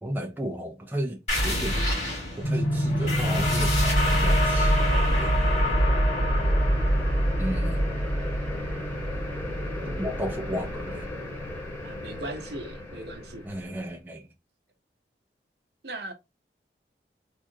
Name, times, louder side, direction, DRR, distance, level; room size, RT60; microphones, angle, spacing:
voice 1, 0.0-1.7 2.4-4.8 5.1-5.6 7.4-8.0 9.8-11.1 13.4-14.2, equal, 10° right, 0.5 m, -34 dB
sound 1, 1.3-10.5, equal, 40° left, 2.1 m, -25 dB
sound 2, 2.4-12.2, equal, 65° left, 1.9 m, -33 dB
sound 3, 2.5-13.9, left 1 dB, 15° left, 1.2 m, -37 dB
voice 2, 11.8-13.4 15.8-16.1, right 1 dB, 65° right, 0.8 m, -38 dB
3.7 x 2.4 x 2.6 m
head